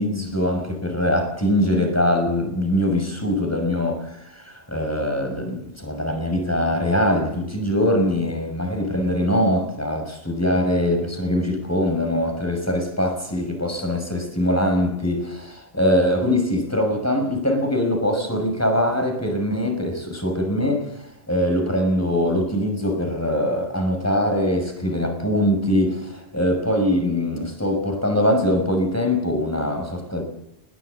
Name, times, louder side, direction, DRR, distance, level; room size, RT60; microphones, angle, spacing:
voice 1, 0.0-20.9 21.3-30.2, left 1 dB, 10° left, 5.9 m, -22 dB
21.0 x 18.5 x 8.1 m
omnidirectional pair, 1.2 m